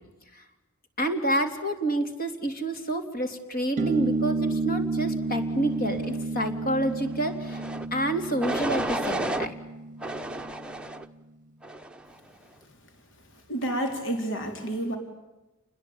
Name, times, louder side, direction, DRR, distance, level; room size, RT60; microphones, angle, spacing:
voice 1, 1.0-7.6 7.9-9.5, right 1 dB, 45° left, 7 dB, 3.4 m, -29 dB
sound 1, 3.8-10.7, right 3 dB, 35° right, 0.9 m, -31 dB
sound 2, 7.5-7.9 8.4-9.5 10.0-11.1 11.6-12.1, right 1 dB, 5° right, 1.0 m, -31 dB
voice 2, 13.5-15.0, right 1 dB, 60° left, 5 dB, 4.0 m, -29 dB
29.0 x 21.0 x 8.9 m, 1.0 s
head